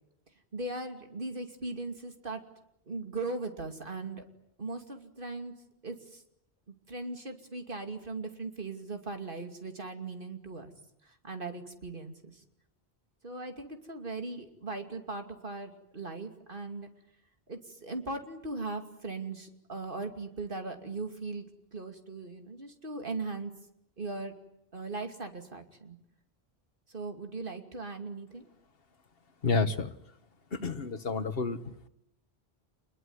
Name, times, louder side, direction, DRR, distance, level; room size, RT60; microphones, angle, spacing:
voice 1, 0.5-2.4 2.9-4.2 4.6-5.5 5.8-6.2 6.9-10.7 11.0-12.4 13.2-16.9 17.5-23.5 24.0-24.3 24.7-26.0 26.9-28.5, right 3 dB, 55° right, 6 dB, 2.9 m, -39 dB
voice 2, 29.4-29.9 30.5-31.9, left 4 dB, 65° left, 11 dB, 1.6 m, -30 dB
28.0 x 21.5 x 9.6 m, 0.78 s
omnidirectional pair, 1.1 m